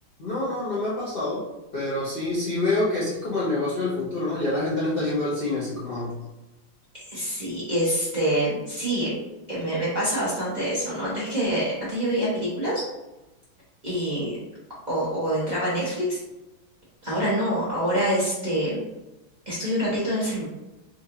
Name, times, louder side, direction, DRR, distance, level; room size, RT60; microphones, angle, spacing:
voice 1, 0.2-1.5 1.7-6.1, left 2 dB, 80° left, -8 dB, 0.5 m, -26 dB
voice 2, 6.9-9.1 9.5-12.8 13.8-14.4 14.9-16.2 17.0-18.8 19.5-20.4, equal, 35° right, -8 dB, 0.7 m, -26 dB
4.3 x 2.4 x 2.8 m, 1.0 s
omnidirectional pair, 2.2 m